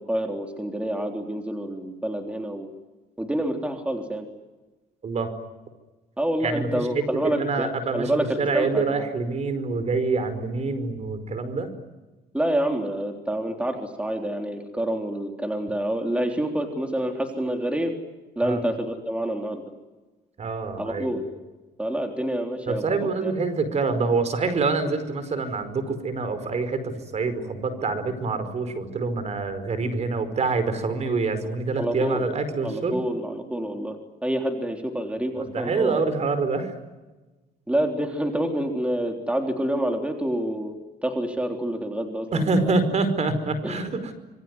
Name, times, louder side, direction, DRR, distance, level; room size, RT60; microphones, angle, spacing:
voice 1, 0.1-2.7 3.2-4.3 6.2-8.2 8.5-9.1 12.3-17.9 18.4-19.7 20.8-21.3 21.8-22.8 23.2-23.3 31.8-32.3 32.6-34.0 34.2-36.1 37.7-40.8 41.0-42.7 43.6-43.8, right 1 dB, 5° right, 3 dB, 3.7 m, -27 dB
voice 2, 6.4-11.7 18.4-18.6 20.4-21.1 22.7-32.9 35.4-36.7 42.3-44.1, right 4 dB, 40° right, 11 dB, 5.0 m, -26 dB
27.0 x 22.5 x 9.7 m, 1.2 s
cardioid pair, 110°, 17 cm